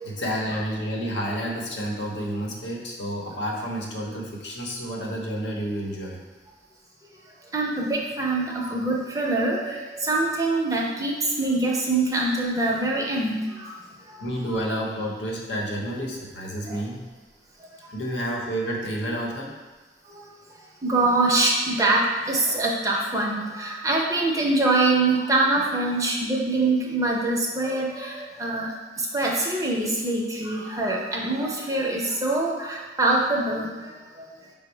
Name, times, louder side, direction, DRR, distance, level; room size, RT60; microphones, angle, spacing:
voice 1, 0.0-6.2 14.2-17.0 17.9-19.5, equal, 90° left, -2 dB, 0.8 m, -30 dB
voice 2, 7.5-13.7 16.7-16.8 20.8-28.7 29.1-33.7, right 2 dB, 20° right, -2 dB, 0.6 m, -24 dB
5.2 x 2.0 x 4.4 m, 1.3 s
head